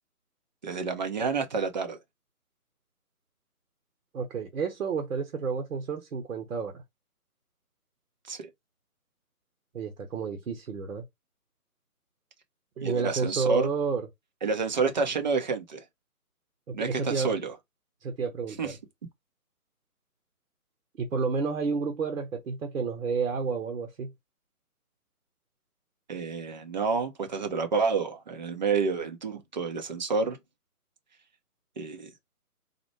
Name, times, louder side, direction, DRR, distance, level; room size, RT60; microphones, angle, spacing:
voice 1, 0.6-2.0 8.3-8.5 12.8-13.7 14.4-15.8 16.7-17.5 18.6-18.8 26.1-30.4 31.8-32.1, right 4 dB, 30° right, 0.6 m, -29 dB
voice 2, 4.1-6.8 9.7-11.0 12.8-14.1 16.7-17.4 18.0-18.8 21.0-24.1, right 5 dB, 60° right, 1.1 m, -30 dB
4.1 x 2.1 x 3.1 m
figure-of-eight pair, 140°, 45 cm